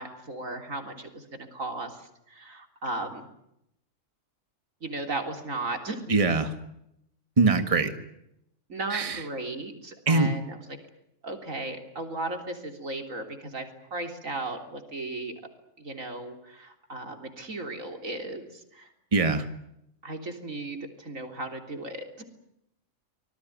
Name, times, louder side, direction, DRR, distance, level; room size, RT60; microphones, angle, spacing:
voice 1, 0.0-3.3 4.8-6.1 8.7-10.6 11.2-15.3 15.8-18.9 20.0-22.2, right 2 dB, 85° right, 5 dB, 3.9 m, -36 dB
voice 2, 6.1-6.5 7.4-7.9 8.9-9.2 10.1-10.3 19.1-19.4, right 3 dB, 25° right, 8 dB, 1.8 m, -22 dB
26.0 x 19.5 x 9.3 m, 0.80 s
omnidirectional pair, 1.3 m